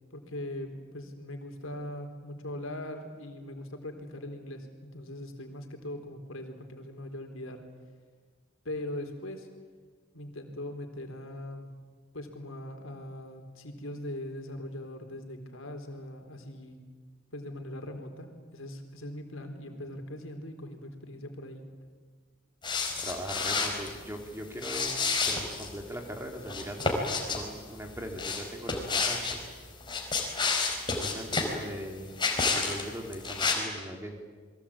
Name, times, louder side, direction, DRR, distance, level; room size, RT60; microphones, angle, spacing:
voice 1, 0.1-7.6 8.6-9.5 10.1-11.7 12.1-16.8 17.3-21.6, left 1 dB, 75° left, 5 dB, 4.1 m, -40 dB
sound 1, 22.6-23.9 24.6-25.7 26.5-27.4 28.2-29.4 29.8-31.5 32.2-32.8 33.1-33.5, left 4 dB, 25° left, 4.5 m, -29 dB
voice 2, 23.0-29.4 30.9-32.2 32.5-34.2, equal, 10° right, 3 dB, 3.4 m, -40 dB
29.5 x 22.0 x 8.8 m, 1.5 s
head